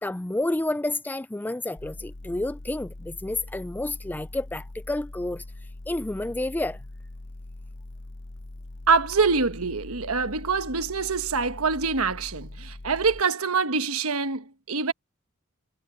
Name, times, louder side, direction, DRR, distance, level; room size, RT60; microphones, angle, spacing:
voice 1, 0.0-5.4 5.9-6.8, left 2 dB, 10° left, 0.3 m, -30 dB
sound 1, 1.8-13.2, left 2 dB, 55° left, 1.0 m, -42 dB
voice 2, 8.9-14.9, right 4 dB, 80° right, 1.2 m, -25 dB
head